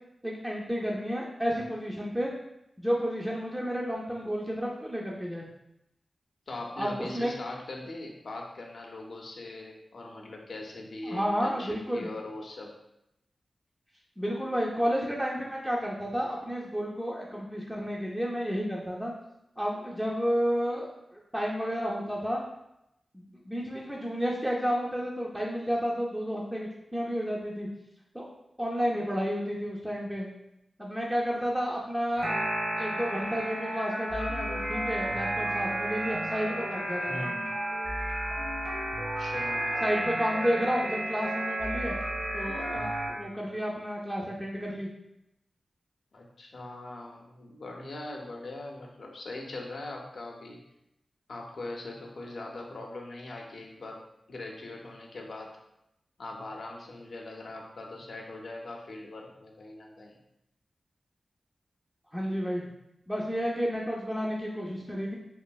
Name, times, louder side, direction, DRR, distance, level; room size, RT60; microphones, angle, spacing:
voice 1, 0.2-2.3 2.8-5.4 6.8-7.3 11.0-12.1 14.2-19.1 19.6-22.4 23.1-27.7 28.1-28.2 28.6-30.3 30.8-32.4 32.8-37.3 39.8-41.9 42.3-44.9 62.1-62.7 63.1-65.2, equal, 5° right, -3 dB, 0.3 m, -31 dB
voice 2, 6.5-12.7 37.1-37.5 38.9-40.0 46.1-50.6 51.3-55.6 56.2-60.2, left 2 dB, 65° left, 0 dB, 0.5 m, -41 dB
sound 1, 32.2-43.1, right 1 dB, 80° right, 0.9 m, -32 dB
3.0 x 2.6 x 2.3 m, 0.84 s
wide cardioid pair, 135°, 0 cm